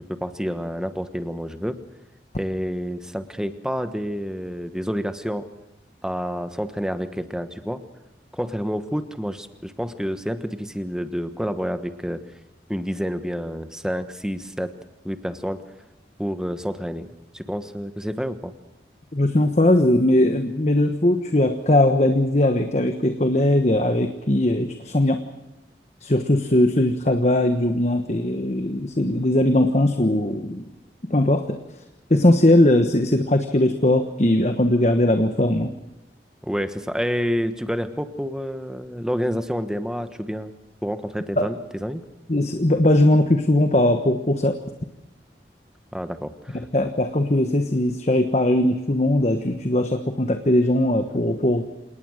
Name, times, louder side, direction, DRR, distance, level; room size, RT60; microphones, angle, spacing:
voice 1, 0.1-1.8 2.4-5.5 6.0-7.8 8.3-12.2 12.7-14.7 15.0-15.6 16.2-17.1 17.3-18.5 36.4-40.5 40.8-42.0 45.9-46.6, equal, 5° right, 9 dB, 1.3 m, -28 dB
voice 2, 19.1-25.3 26.0-30.6 31.1-31.6 32.1-35.7 41.4-41.5 42.3-44.6 46.7-51.6, left 1 dB, 40° left, 7 dB, 1.2 m, -19 dB
28.0 x 19.0 x 6.5 m, 0.96 s
head